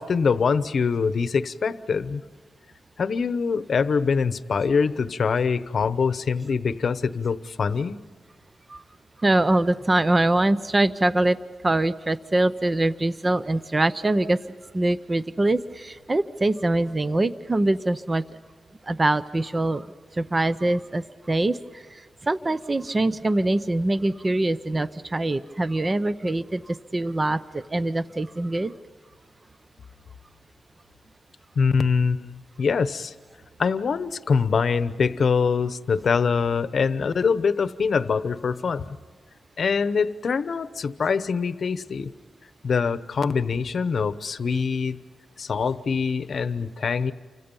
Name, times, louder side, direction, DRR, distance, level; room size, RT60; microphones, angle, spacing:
voice 1, 0.0-2.2 3.0-8.0 31.6-33.1 33.6-39.0 39.6-42.1 42.6-45.0 45.4-47.1, left 5 dB, 50° left, 13 dB, 0.9 m, -24 dB
voice 2, 9.2-11.4 11.6-14.4 14.7-18.2 18.8-19.9 20.1-28.7, right 2 dB, 20° right, 13 dB, 0.6 m, -23 dB
29.5 x 25.5 x 5.5 m, 1.5 s
wide cardioid pair, 175°, 0 cm